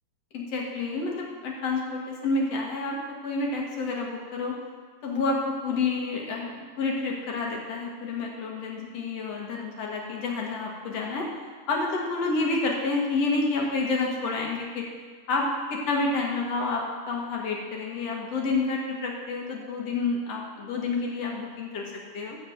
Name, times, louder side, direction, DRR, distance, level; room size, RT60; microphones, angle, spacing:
voice 1, 0.3-4.6 5.0-11.3 11.7-14.9 15.3-22.4, left 3 dB, 55° left, -1 dB, 2.1 m, -29 dB
13.0 x 4.4 x 7.8 m, 1.5 s
omnidirectional pair, 3.9 m